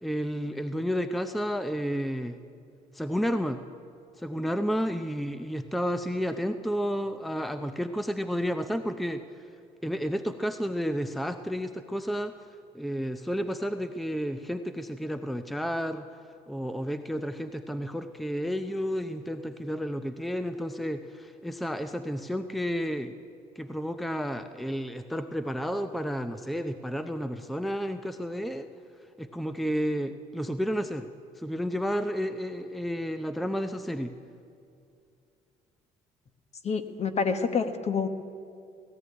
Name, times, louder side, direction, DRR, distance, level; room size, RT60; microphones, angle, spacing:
voice 1, 0.0-2.4 2.9-3.6 4.2-9.4 9.8-12.4 12.7-16.1 16.5-23.1 23.6-28.7 29.2-31.1 31.4-34.2, equal, ahead, 9 dB, 0.6 m, -31 dB
voice 2, 36.6-38.1, left 5 dB, 40° left, 9 dB, 1.3 m, -27 dB
17.5 x 15.5 x 9.7 m, 2.5 s
cardioid pair, 110°, 17 cm